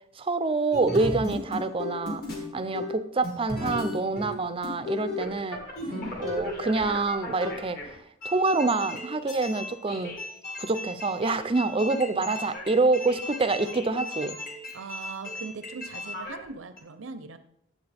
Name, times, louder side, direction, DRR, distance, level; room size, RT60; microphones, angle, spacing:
voice 1, 0.2-2.2 2.5-5.6 6.2-7.8 8.2-10.1 10.6-14.4, right 3 dB, 25° right, 11 dB, 0.5 m, -26 dB
sound 1, 0.7-2.5 2.7-3.0 3.2-4.4 4.6-16.5 16.8-16.9, left 1 dB, 50° left, 1.9 m, -36 dB
voice 2, 5.9-6.2 14.7-17.4, right 4 dB, 70° right, 11 dB, 0.6 m, -40 dB
10.5 x 7.5 x 3.4 m, 0.74 s
head